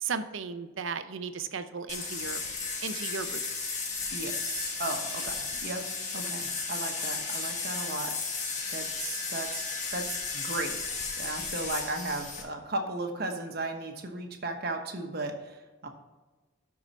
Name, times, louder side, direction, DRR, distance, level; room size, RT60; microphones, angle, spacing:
voice 1, 0.0-2.4 2.8-3.4, right 5 dB, 65° right, 11 dB, 0.6 m, -35 dB
sound 1, 1.9-12.4, left 4 dB, 35° left, 1.3 m, -34 dB
voice 2, 4.1-5.8 6.1-10.7 11.2-15.9, right 2 dB, 50° right, 4 dB, 1.2 m, -36 dB
12.5 x 4.8 x 4.1 m, 1.2 s
head